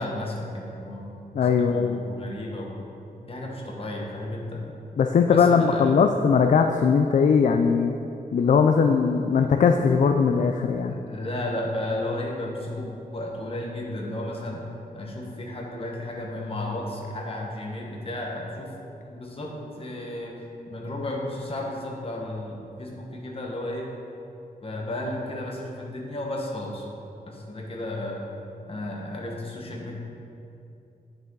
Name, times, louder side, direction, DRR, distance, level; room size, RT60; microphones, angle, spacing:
voice 1, 0.0-1.2 1.6-2.8 3.3-4.7 5.3-6.1 10.9-14.7 14.9-18.7 19.1-23.9 24.6-26.9 27.3-28.2 28.7-29.9, left 1 dB, 35° left, -1 dB, 1.3 m, -33 dB
voice 2, 1.3-2.0 5.0-8.0 8.3-10.9, left 6 dB, 55° left, 5 dB, 0.4 m, -20 dB
9.5 x 6.7 x 3.8 m, 2.7 s
wide cardioid pair, 140°, 16 cm